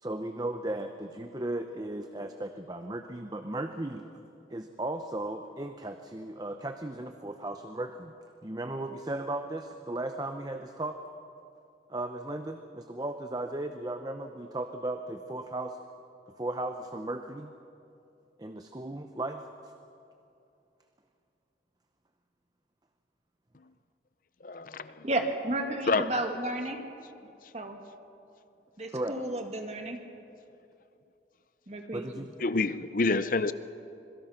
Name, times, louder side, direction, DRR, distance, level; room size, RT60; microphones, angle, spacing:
voice 1, 0.0-4.0 4.5-8.1 8.4-11.0 11.9-15.8 16.4-17.5 18.4-19.5 28.9-29.2 31.9-32.3, right 2 dB, 20° right, 7 dB, 0.8 m, -36 dB
voice 2, 24.4-24.9 25.9-26.1 32.4-33.5, left 3 dB, 50° left, 13 dB, 0.6 m, -27 dB
voice 3, 25.0-26.9 27.5-27.8 28.8-30.0 31.7-32.1, right 1 dB, 40° right, 3 dB, 2.3 m, -32 dB
26.0 x 22.5 x 5.9 m, 2.7 s
head